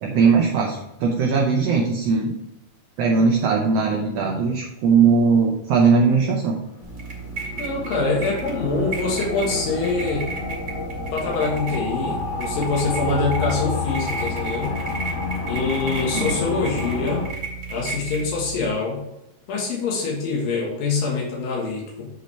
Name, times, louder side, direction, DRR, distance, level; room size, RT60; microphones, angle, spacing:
voice 1, 0.0-2.3 3.0-6.6 16.1-16.4, right 5 dB, 75° right, 0 dB, 1.5 m, -19 dB
sound 1, 6.6-17.3, left 4 dB, 50° left, 2.8 m, -30 dB
sound 2, 6.8-18.7, right 4 dB, 30° right, 2.1 m, -34 dB
voice 2, 7.6-10.3 11.1-14.7 15.5-17.3 17.7-19.0 19.5-22.1, left 3 dB, 90° left, -3 dB, 3.2 m, -25 dB
8.9 x 5.4 x 3.3 m, 0.86 s
omnidirectional pair, 3.9 m